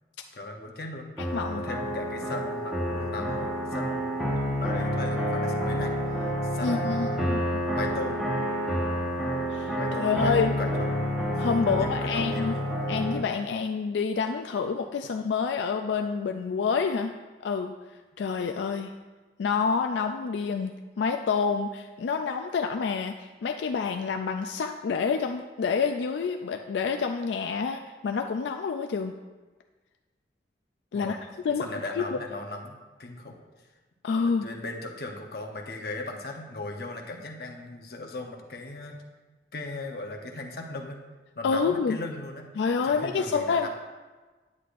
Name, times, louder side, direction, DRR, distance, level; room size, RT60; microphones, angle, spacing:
voice 1, 0.3-1.1 1.5-4.3 4.6-5.9 6.5-7.4 7.7-8.2 9.8-10.9 11.7-12.8 30.9-31.2 31.5-33.4 34.3-39.0 39.5-41.0 41.3-42.5 42.8-43.7, left 2 dB, 60° left, 2 dB, 0.9 m, -38 dB
sound 1, 1.2-13.2, equal, ahead, 1.2 m, -29 dB
voice 2, 6.6-7.6 9.5-10.5 11.4-12.5 12.9-17.1 17.4-17.7 18.2-18.9 19.4-20.7 21.0-29.1 30.9-31.6 32.0-32.1 34.0-34.5 41.4-42.0 42.6-43.7, left 5 dB, 85° left, 5 dB, 0.4 m, -28 dB
9.6 x 8.3 x 2.5 m, 1.3 s
head